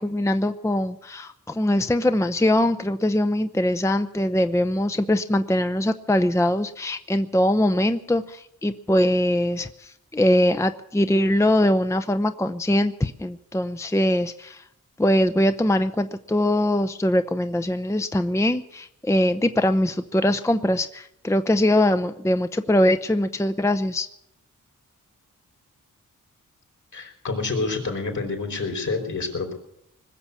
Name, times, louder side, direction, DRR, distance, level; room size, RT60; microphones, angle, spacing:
voice 1, 0.0-14.6 15.0-24.1, left 1 dB, 10° left, 9 dB, 0.7 m, -22 dB
voice 2, 26.9-29.5, left 3 dB, 65° left, 2 dB, 4.7 m, -28 dB
20.5 x 7.0 x 9.7 m, 0.77 s
cardioid pair, 55°, 33 cm